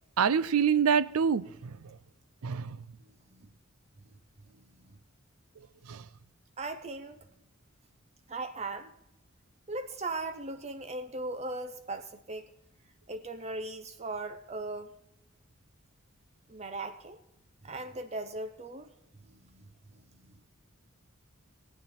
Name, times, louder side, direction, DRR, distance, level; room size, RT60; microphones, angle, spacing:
voice 1, 0.2-1.8 2.4-2.8 5.9-6.0, right 7 dB, 80° right, 0.5 m, -26 dB
voice 2, 3.0-3.5 4.4-5.0 6.6-7.2 8.3-8.9 9.7-12.5 13.1-14.9 16.5-17.2 17.6-18.9 19.2-20.4, right 2 dB, 30° right, 0.6 m, -39 dB
18.5 x 8.9 x 4.3 m
head